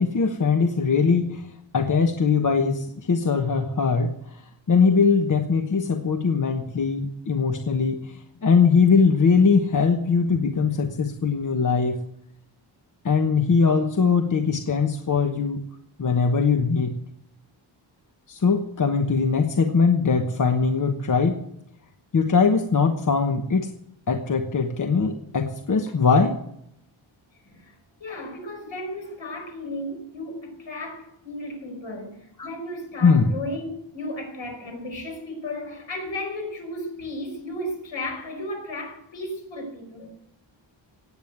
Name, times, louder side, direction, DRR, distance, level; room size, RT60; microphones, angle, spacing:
voice 1, 0.0-4.4 4.7-12.0 13.0-15.6 16.0-16.9 18.3-21.4 22.1-23.7 24.1-26.4 32.4-32.5 33.0-33.3, left 5 dB, 40° left, 1.1 m, -21 dB
voice 2, 27.4-40.1, left 1 dB, 70° left, 5.3 m, -34 dB
18.0 x 8.8 x 8.0 m
wide cardioid pair, 175°, 47 cm